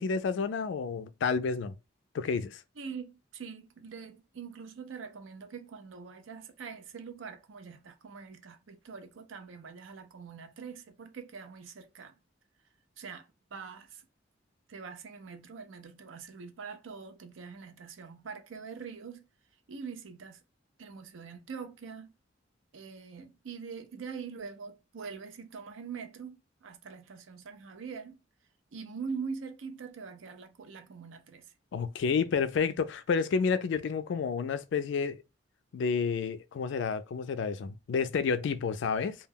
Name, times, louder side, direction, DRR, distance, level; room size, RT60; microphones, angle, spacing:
voice 1, 0.0-1.7 2.1-2.6 31.7-35.2 35.7-39.1, left 5 dB, 65° left, 0.3 m, -30 dB
voice 2, 2.8-12.2 13.0-14.0 14.7-19.3 19.7-20.4 20.8-22.1 22.7-28.2 28.7-31.5, right 5 dB, 85° right, 0.5 m, -43 dB
2.2 x 2.2 x 3.3 m
head